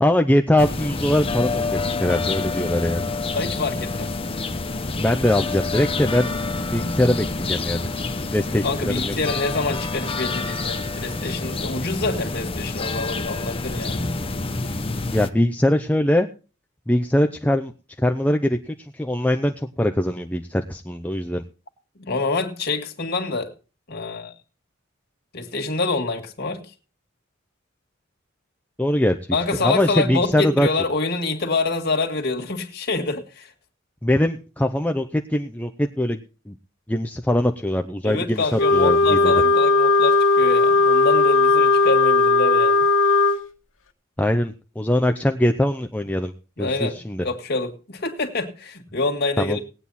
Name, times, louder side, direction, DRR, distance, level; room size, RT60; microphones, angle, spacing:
voice 1, 0.0-3.0 5.0-6.3 6.7-7.9 8.3-9.1 15.1-16.3 16.9-17.7 18.0-21.4 28.8-29.2 29.6-30.7 34.0-36.2 36.5-36.6 36.9-39.4 44.2-46.3 46.6-47.2 49.4-49.6, left 1 dB, 10° left, 0.6 m, -22 dB
sound 1, 0.6-15.3, left 3 dB, 30° left, 0.9 m, -27 dB
voice 2, 3.3-4.1 8.6-14.0 22.0-23.5 23.9-24.3 25.3-26.6 29.3-33.5 38.0-42.9 46.6-49.6, left 3 dB, 55° left, 2.0 m, -26 dB
Wind instrument woodwind instrument, 38.5-43.4, left 3 dB, 75° left, 1.7 m, -17 dB
18.5 x 9.0 x 4.2 m
head